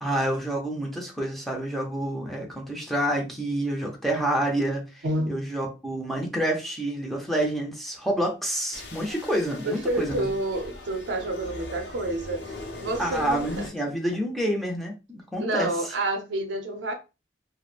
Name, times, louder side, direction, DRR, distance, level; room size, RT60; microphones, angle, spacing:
voice 1, 0.0-10.3 13.0-15.7, right 1 dB, ahead, 0.6 m, -28 dB
voice 2, 5.0-5.4 9.6-13.7 15.4-16.9, right 1 dB, 90° right, 0.6 m, -29 dB
sound 1, 8.7-13.7, left 2 dB, 65° left, 0.6 m, -40 dB
2.9 x 2.1 x 2.4 m
head